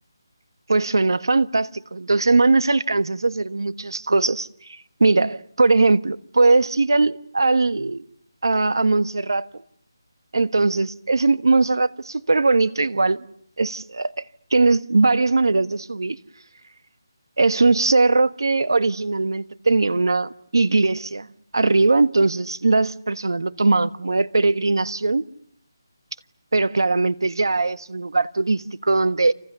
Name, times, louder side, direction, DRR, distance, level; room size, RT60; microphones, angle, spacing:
voice 1, 0.7-8.0 8.4-9.5 10.3-13.2 13.6-14.1 14.5-16.2 17.4-21.3 21.5-25.2 26.5-29.3, right 3 dB, 65° right, 1.4 m, -20 dB
29.0 x 28.0 x 6.9 m
figure-of-eight pair, 180°, 2 cm